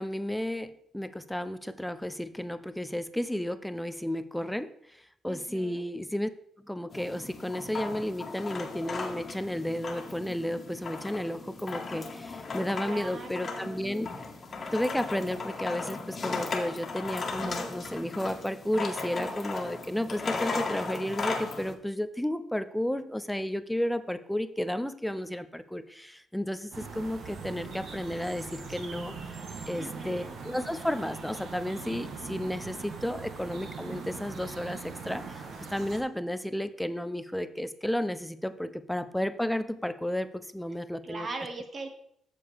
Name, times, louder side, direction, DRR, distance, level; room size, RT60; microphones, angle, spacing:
voice 1, 0.0-6.3 6.7-14.1 14.7-29.4 29.7-35.4 35.7-41.3, left 1 dB, 5° left, 12 dB, 0.5 m, -33 dB
voice 2, 5.3-5.8 12.8-13.8 29.7-30.3 41.0-41.9, right 3 dB, 45° right, 4 dB, 1.5 m, -40 dB
sound 1, 6.9-21.7, left 4 dB, 40° left, 1.5 m, -36 dB
sound 2, 26.7-36.0, right 4 dB, 65° right, 1.4 m, -41 dB
8.5 x 6.8 x 3.4 m, 0.69 s
cardioid pair, 90°, 0 cm